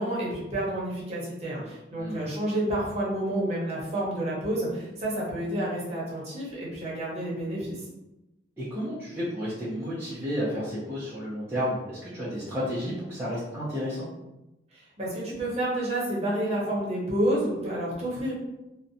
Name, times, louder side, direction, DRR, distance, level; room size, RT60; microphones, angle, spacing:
voice 1, 0.0-7.8 14.7-18.3, right 1 dB, 35° right, -5 dB, 0.8 m, -29 dB
voice 2, 8.6-14.1, equal, 15° right, -10 dB, 0.5 m, -32 dB
2.6 x 2.1 x 2.6 m, 0.95 s
head